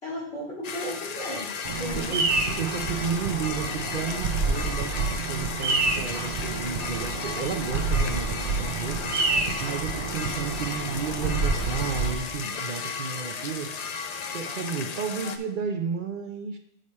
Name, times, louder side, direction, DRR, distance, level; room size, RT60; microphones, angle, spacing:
voice 1, 0.0-2.2, equal, 80° left, -7 dB, 3.4 m, -35 dB
sound 1, 0.6-15.4, left 5 dB, 50° left, 0.5 m, -34 dB
Bird vocalization bird call bird song, 1.6-12.2, right 4 dB, 90° right, 1.0 m, -28 dB
voice 2, 1.9-9.1 9.6-13.7 14.3-16.6, right 5 dB, 55° right, 5 dB, 0.8 m, -32 dB
6.6 x 4.9 x 4.2 m, 0.78 s
omnidirectional pair, 1.1 m